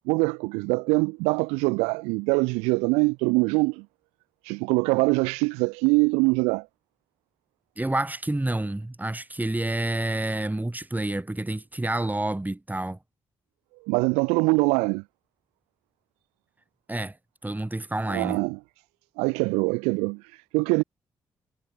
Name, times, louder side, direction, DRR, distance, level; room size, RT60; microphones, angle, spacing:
voice 1, 0.1-3.8 4.4-6.7 13.9-15.0 18.1-18.6 19.2-20.8, right 29 dB, 90° right, 0.8 m, -23 dB
voice 2, 7.8-13.0 16.9-17.2 17.4-18.4, right 1 dB, 15° right, 5.3 m, -28 dB
hypercardioid pair, 45°, 11 cm